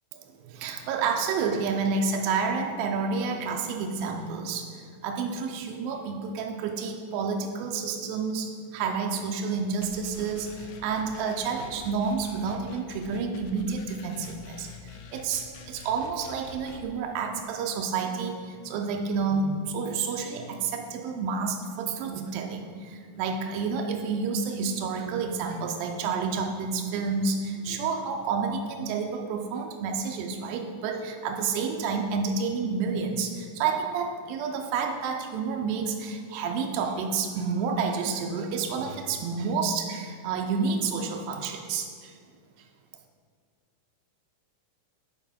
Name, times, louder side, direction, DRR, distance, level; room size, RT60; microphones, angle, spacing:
voice 1, 0.4-42.1, right 5 dB, 85° right, 2 dB, 2.3 m, -29 dB
sound 1, 9.8-16.9, left 5 dB, 85° left, 2.4 m, -47 dB
8.2 x 3.9 x 4.2 m, 2.1 s
omnidirectional pair, 4.1 m